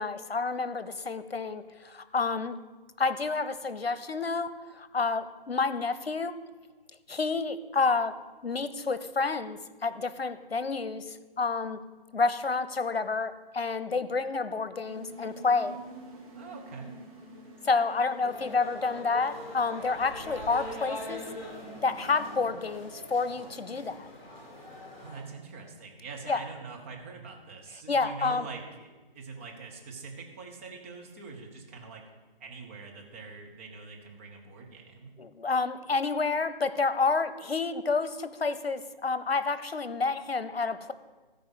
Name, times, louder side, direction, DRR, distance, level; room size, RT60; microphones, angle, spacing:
voice 1, 0.0-2.6 3.0-6.4 7.1-8.2 8.4-11.8 12.1-15.8 17.6-21.2 21.8-24.1 26.3-26.4 27.9-28.5 35.2-40.9, left 4 dB, 85° left, 14 dB, 0.9 m, -29 dB
sound 1, 14.8-22.5, right 1 dB, 40° right, 2.9 m, -48 dB
voice 2, 16.4-17.0 25.0-32.0 32.4-35.1, right 4 dB, 15° right, 1 dB, 0.8 m, -44 dB
sound 2, 18.2-25.2, left 1 dB, 35° left, 3.1 m, -43 dB
14.0 x 5.0 x 7.9 m, 1.3 s
figure-of-eight pair, 155°, 29 cm